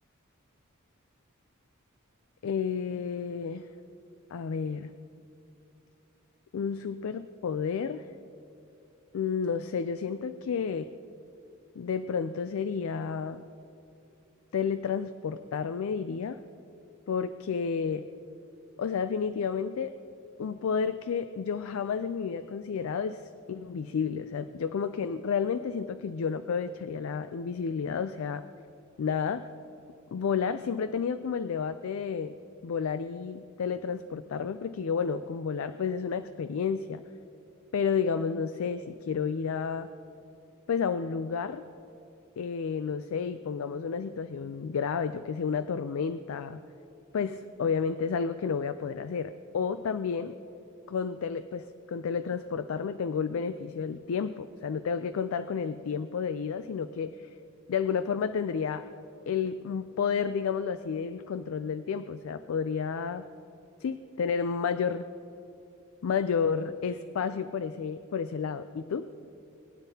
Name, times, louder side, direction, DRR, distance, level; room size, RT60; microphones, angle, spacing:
voice 1, 2.4-3.7 4.3-4.9 6.5-8.1 9.1-10.9 11.8-13.4 14.5-16.4 17.1-18.1 18.8-19.9 20.4-23.2 23.5-28.4 29.0-29.5 30.1-32.3 32.6-37.0 37.7-39.9 40.7-41.6 42.4-46.6 47.1-50.3 50.9-57.3 57.7-58.9 59.3-63.2 63.8-65.1 66.0-69.1, left 6 dB, 75° left, 11 dB, 0.4 m, -31 dB
21.5 x 10.0 x 2.8 m, 2.8 s
head